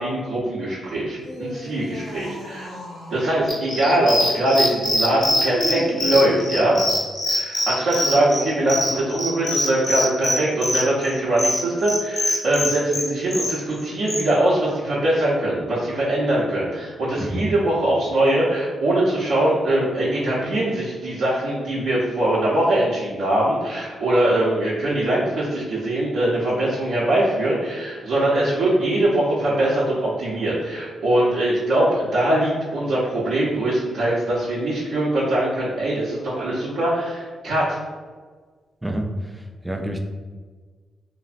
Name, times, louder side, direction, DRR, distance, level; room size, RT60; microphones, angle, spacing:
voice 1, 0.0-2.7 3.1-6.8 7.3-37.8, right 1 dB, 75° right, -9 dB, 0.6 m, -22 dB
sound 1, 1.1-3.4 5.3-7.1 8.7-9.2, left 1 dB, 75° left, 0.6 m, -35 dB
sound 2, 3.5-14.2, left 1 dB, 30° left, 0.8 m, -24 dB
voice 2, 38.8-40.0, right 1 dB, 10° right, 3 dB, 0.3 m, -28 dB
3.2 x 2.0 x 2.4 m, 1.5 s
cardioid pair, 65°, 0 cm